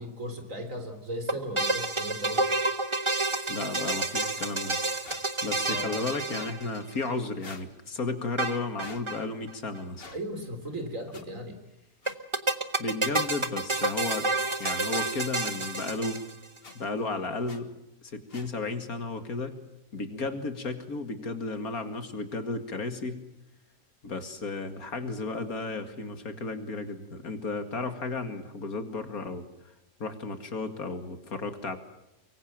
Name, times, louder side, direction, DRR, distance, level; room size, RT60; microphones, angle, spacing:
voice 1, 0.0-2.5 5.7-6.0 10.1-11.6, equal, 55° right, 7 dB, 3.9 m, -36 dB
sound 1, 1.3-7.1 8.4-9.2 9.5-9.6 9.8-9.9 12.1-16.6, right 2 dB, 20° right, 1.2 m, -29 dB
voice 2, 3.5-4.8 5.4-10.1 12.8-14.3 14.6-16.2 16.7-17.7 18.0-19.6 19.9-23.2 24.0-29.5 30.0-31.8, left 3 dB, 70° left, 8 dB, 2.6 m, -33 dB
sound 2, 4.1-4.3 5.0-5.2 6.3-6.6 7.4-7.7 8.8-9.0 10.0-10.2 11.1-11.2 12.0-12.2 13.1-13.3 13.7-13.9 14.9-15.1 15.6-15.7 16.6-16.7 17.5-17.6 18.3-18.5, left 4 dB, 40° left, 1.7 m, -46 dB
24.0 x 24.0 x 7.5 m, 0.88 s
omnidirectional pair, 1.6 m